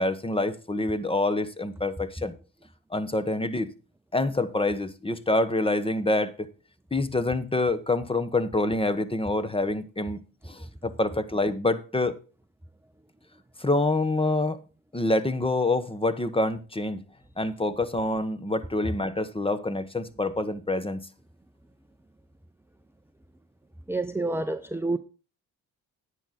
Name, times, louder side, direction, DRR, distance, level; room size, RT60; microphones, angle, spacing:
voice 1, 0.0-2.3 2.9-3.7 4.1-6.5 6.9-10.2 10.5-12.2 13.6-14.6 14.9-17.0 17.4-21.0, left 2 dB, 15° left, 1.1 m, -26 dB
voice 2, 23.9-25.0, right 2 dB, 5° right, 0.6 m, -28 dB
10.0 x 9.2 x 4.2 m
cardioid pair, 85°, 36 cm